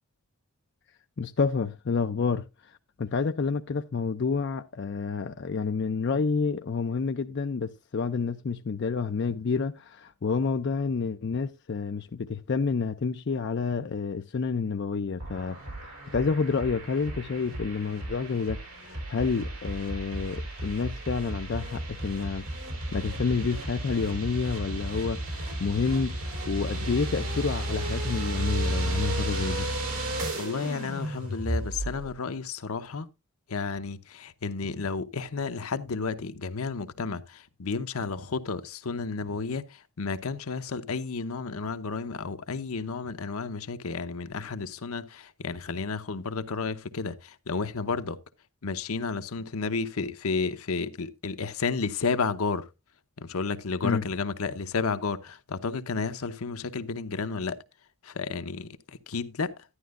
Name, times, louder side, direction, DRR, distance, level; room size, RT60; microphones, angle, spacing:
voice 1, 1.2-15.6 15.8-22.5 22.9-29.7 53.8-54.0, left 5 dB, 55° left, 0.4 m, -29 dB
sound 1, 15.2-32.1, right 1 dB, 80° right, 4.5 m, -33 dB
voice 2, 30.3-33.1 33.5-39.6 40.0-48.2 48.6-52.6 53.2-57.6 58.0-58.7 59.1-59.5, left 4 dB, 80° left, 0.8 m, -32 dB
11.5 x 10.5 x 2.4 m
head